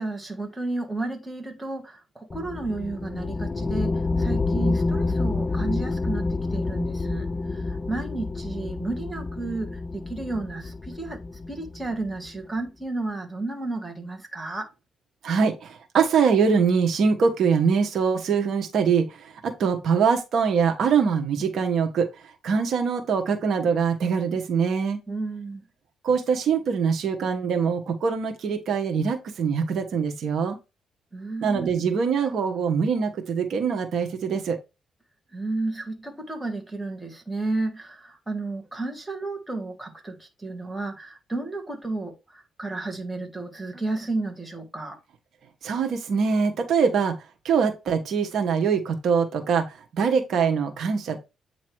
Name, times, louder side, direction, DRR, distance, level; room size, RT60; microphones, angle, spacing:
voice 1, 0.0-11.2 11.5-14.7 25.1-25.6 31.1-31.7 35.3-45.0, right 2 dB, 10° right, 1.7 m, -32 dB
sound 1, 2.3-12.3, left 3 dB, 30° left, 0.4 m, -28 dB
voice 2, 15.2-22.1 22.4-25.0 26.0-30.6 31.4-34.6 45.6-47.1 47.4-51.2, right 6 dB, 65° right, 1.2 m, -23 dB
8.7 x 2.9 x 4.6 m
cardioid pair, 90°, 0 cm